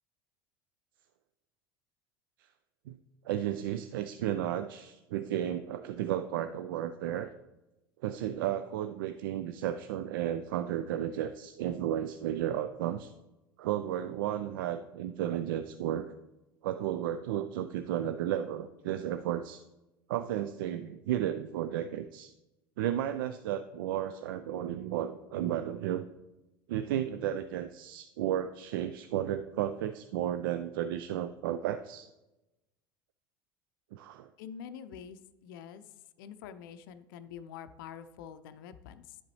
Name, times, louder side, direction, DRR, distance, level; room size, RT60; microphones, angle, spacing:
voice 1, 3.2-7.3 8.0-13.1 13.6-16.1 16.6-19.6 20.1-22.3 22.8-26.0 26.7-32.1 33.9-34.3, right 11 dB, 65° right, 11 dB, 0.4 m, -33 dB
voice 2, 34.4-35.9 36.2-39.2, left 8 dB, 60° left, 11 dB, 0.5 m, -46 dB
10.5 x 7.3 x 3.1 m, 1.0 s
figure-of-eight pair, 70°, 12 cm